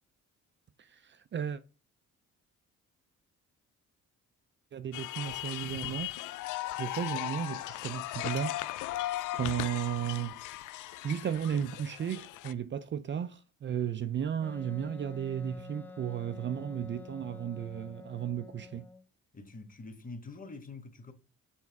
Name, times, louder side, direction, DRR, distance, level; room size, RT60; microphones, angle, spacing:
voice 1, 0.8-1.6 4.7-6.1 6.8-8.5 9.3-10.4 11.0-18.9, right 9 dB, 40° right, 0.5 m, -34 dB
sound 1, 4.9-12.5, left 15 dB, 85° left, 0.5 m, -37 dB
Wind instrument woodwind instrument, 14.4-19.1, left 4 dB, 5° left, 0.6 m, -48 dB
voice 2, 19.3-21.1, left 3 dB, 25° left, 1.4 m, -45 dB
7.2 x 3.2 x 4.6 m
cardioid pair, 90°, 30 cm